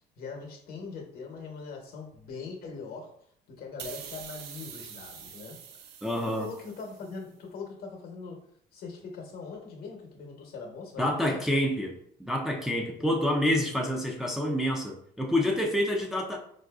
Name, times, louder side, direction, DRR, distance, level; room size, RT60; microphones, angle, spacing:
voice 1, 0.2-3.1 3.5-5.6 6.2-8.4 8.7-11.4 13.0-13.1, left 4 dB, 65° left, 2 dB, 0.9 m, -41 dB
sound 1, 3.8-7.2, right 8 dB, 75° right, 0.4 m, -45 dB
voice 2, 6.0-6.5 11.0-11.9 12.2-16.4, left 1 dB, ahead, 0 dB, 0.4 m, -27 dB
3.8 x 2.6 x 2.3 m, 0.65 s
cardioid pair, 110°, 17 cm